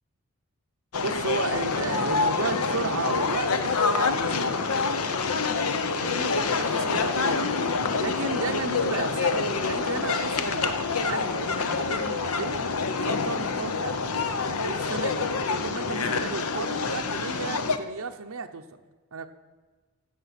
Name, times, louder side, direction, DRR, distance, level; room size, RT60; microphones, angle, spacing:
sound 1, 0.9-17.8, left 4 dB, 90° left, 0.8 m, -27 dB
voice 1, 1.0-4.6 6.0-7.5 8.0-12.6 12.9-14.0 14.6-15.3 15.6-18.6 19.1-19.3, right 4 dB, 75° right, 5 dB, 0.7 m, -34 dB
16.0 x 6.9 x 5.9 m, 1.3 s
head